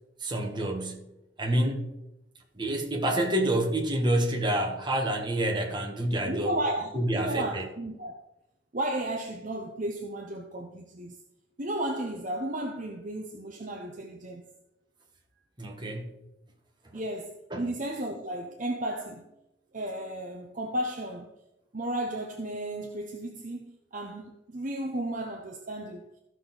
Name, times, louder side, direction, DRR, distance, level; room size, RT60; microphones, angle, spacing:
voice 1, 0.2-1.1 1.4-1.9 2.6-6.5 6.9-7.7 15.6-16.1 17.5-17.7, right 1 dB, 25° right, 1.7 m, -28 dB
voice 2, 6.2-8.2 8.7-11.2 11.6-14.4 16.9-19.3 19.7-21.3 21.7-26.0, right 1 dB, 45° right, 0.9 m, -33 dB
14.5 x 6.2 x 4.0 m
head